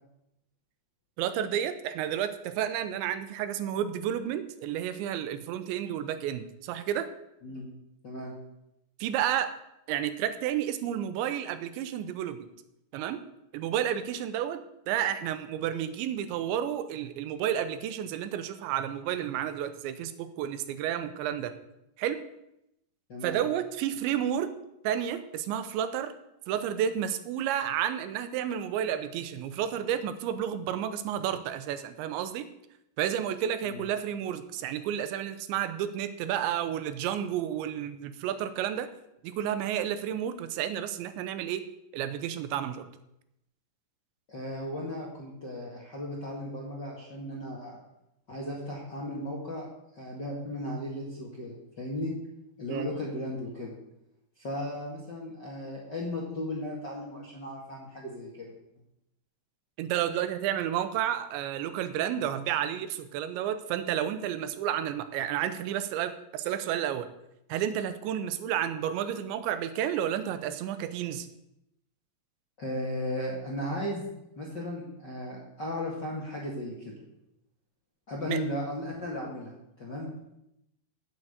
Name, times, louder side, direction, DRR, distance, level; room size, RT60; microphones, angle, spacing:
voice 1, 1.2-7.1 9.0-9.5 9.9-12.5 12.9-13.2 13.5-14.6 14.9-21.5 22.0-22.2 23.2-24.5 24.8-26.1 26.5-32.5 33.0-38.9 39.2-41.6 41.9-42.9 52.7-52.9 59.8-67.1 67.5-71.3 78.3-78.4, right 10 dB, 90° right, 11 dB, 3.1 m, -31 dB
voice 2, 8.0-8.3 23.1-23.4 33.6-33.8 44.3-47.8 48.3-49.7 49.9-52.1 52.6-53.7 54.4-58.5 72.6-74.1 74.3-76.9 78.1-80.1, left 1 dB, 45° left, -3 dB, 1.4 m, -36 dB
9.0 x 8.7 x 8.0 m, 0.84 s
omnidirectional pair, 5.2 m